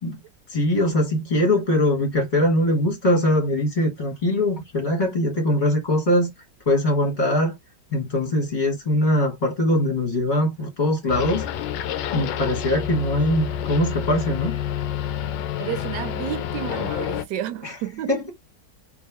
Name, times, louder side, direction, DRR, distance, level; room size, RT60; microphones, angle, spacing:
voice 1, 0.5-6.3 6.6-7.5 7.9-11.5 12.1-14.6 17.6-17.8 18.1-18.3, left 1 dB, 25° left, 1.4 m, -22 dB
sound 1, 11.1-17.3, left 9 dB, 85° left, 1.2 m, -28 dB
voice 2, 15.6-18.2, right 11 dB, 80° right, 1.3 m, -31 dB
3.4 x 2.9 x 3.4 m
omnidirectional pair, 1.9 m